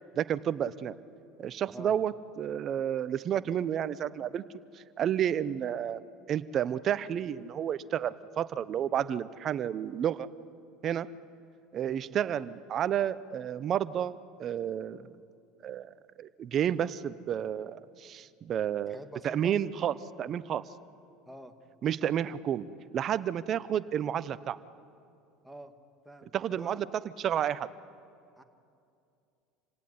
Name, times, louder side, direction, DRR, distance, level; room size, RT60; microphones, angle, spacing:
voice 1, 0.2-0.9 1.4-6.0 6.3-10.3 10.8-11.1 11.7-15.2 15.6-15.9 16.2-19.0 19.2-20.6 21.8-22.7 22.9-24.6 26.3-26.9 27.2-27.7, right 9 dB, 45° right, 16 dB, 0.9 m, -31 dB
voice 2, 11.9-12.2 18.9-19.6 21.3-21.5 25.4-25.7 26.1-26.8 28.4-28.5, right 1 dB, 5° right, 5 dB, 2.1 m, -47 dB
27.5 x 17.5 x 9.7 m, 2.5 s
hypercardioid pair, 80°, 0 cm